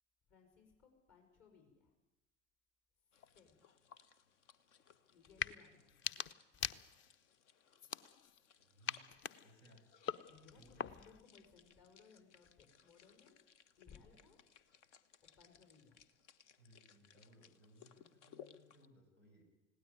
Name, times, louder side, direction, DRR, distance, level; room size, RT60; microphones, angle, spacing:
voice 1, 0.3-1.9 3.3-3.6 5.1-5.9 10.3-13.4 13.8-14.4 15.4-16.0, left 5 dB, 50° left, 2 dB, 5.6 m, -64 dB
sound 1, 3.1-18.9, left 8 dB, 70° left, 1.3 m, -64 dB
sound 2, 5.3-5.6 5.9-7.2 7.8-8.5 8.9-11.2, left 8 dB, 30° left, 0.8 m, -44 dB
voice 2, 8.5-10.1 10.5-10.8 16.6-19.5, equal, 90° left, 1 dB, 7.4 m, -65 dB
19.5 x 17.0 x 9.5 m, 0.96 s
hypercardioid pair, 80°, 37 cm